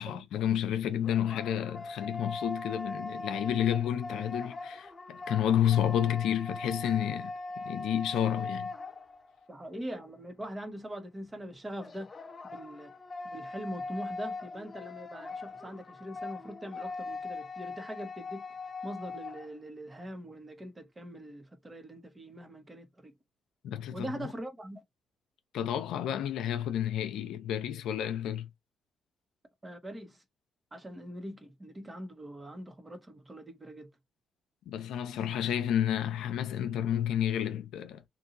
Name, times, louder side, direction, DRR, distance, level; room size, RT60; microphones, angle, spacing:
voice 1, 0.0-7.3 7.6-8.7 23.6-24.3 25.5-28.5 34.7-38.0, left 10 dB, 80° left, 0.6 m, -30 dB
sound 1, 0.8-9.5 11.8-19.5, left 3 dB, 40° left, 0.6 m, -41 dB
voice 2, 9.5-12.1 12.4-12.9 13.2-18.5 18.8-23.1 23.9-24.8 29.6-30.2 30.7-33.9, equal, 25° right, 1.1 m, -42 dB
2.8 x 2.6 x 2.7 m
supercardioid pair, 65°, 0 cm